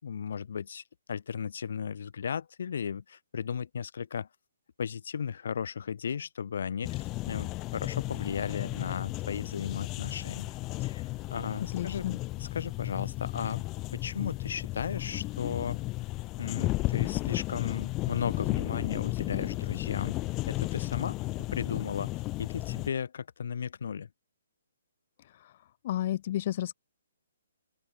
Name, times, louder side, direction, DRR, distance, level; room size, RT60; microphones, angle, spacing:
voice 1, 0.0-4.3 4.8-10.5 10.8-11.0 11.3-12.0 12.4-13.6 13.9-15.8 16.4-20.2 20.5-22.1 22.4-24.1, left 7 dB, 65° left, 4.1 m, -35 dB
sound 1, 6.8-22.9, left 20 dB, 20° left, 2.6 m, -34 dB
voice 2, 11.7-12.2 25.4-25.5 25.8-26.7, left 13 dB, 40° left, 1.8 m, -31 dB
open air
hypercardioid pair, 155°, 0 cm